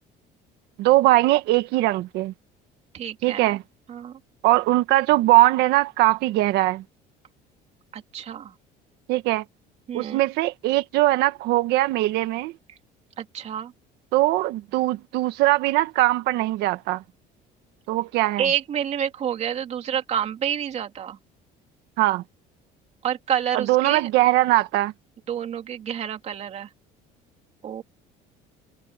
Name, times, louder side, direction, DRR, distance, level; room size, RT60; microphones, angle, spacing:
voice 1, 0.8-2.3 3.2-3.6 4.4-6.8 9.1-9.4 9.9-12.5 14.1-17.0 17.9-18.4 22.0-22.2 23.5-24.9, right 17 dB, 75° right, 1.7 m, -21 dB
voice 2, 2.9-3.5 3.9-4.2 7.9-8.5 9.9-10.2 13.2-13.7 18.4-21.2 23.0-24.1 25.3-26.7 27.6-27.8, right 9 dB, 40° right, 3.1 m, -28 dB
cardioid pair, 145°, 17 cm